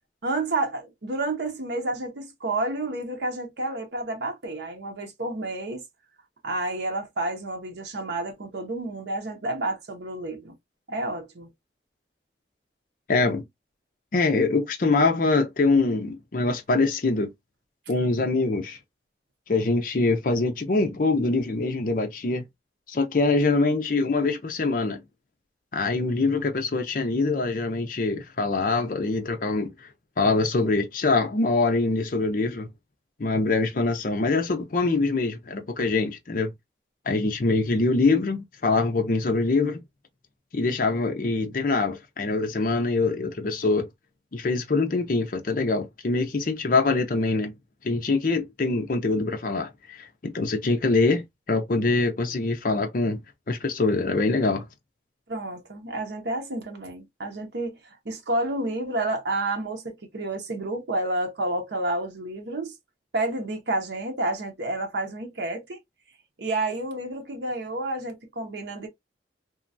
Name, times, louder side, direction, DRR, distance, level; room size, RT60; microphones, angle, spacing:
voice 1, 0.2-5.8 6.4-10.5 10.9-11.5 55.3-57.8 58.0-62.7 63.1-65.8 66.4-68.9, right 2 dB, 75° right, 0.8 m, -30 dB
voice 2, 13.1-13.4 14.1-17.3 17.9-18.8 19.5-22.4 22.9-25.0 25.7-29.7 30.2-32.7 33.2-36.5 37.1-39.8 40.5-43.9 44.3-47.5 47.8-51.2 51.5-53.2 53.5-54.7, left 3 dB, 50° left, 0.5 m, -24 dB
3.0 x 2.3 x 2.5 m
head